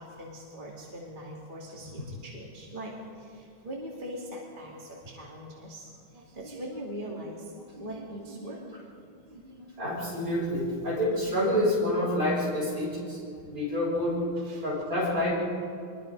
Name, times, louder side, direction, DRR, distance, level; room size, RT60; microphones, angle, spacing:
voice 1, 0.0-10.1 13.4-13.5 14.4-14.7 15.0-15.1, equal, 25° right, -3 dB, 2.6 m, -42 dB
voice 2, 9.8-13.2 13.5-14.2 14.6-15.3, left 1 dB, 40° right, -5 dB, 7.2 m, -27 dB
24.5 x 21.5 x 5.4 m, 2.3 s
omnidirectional pair, 2.3 m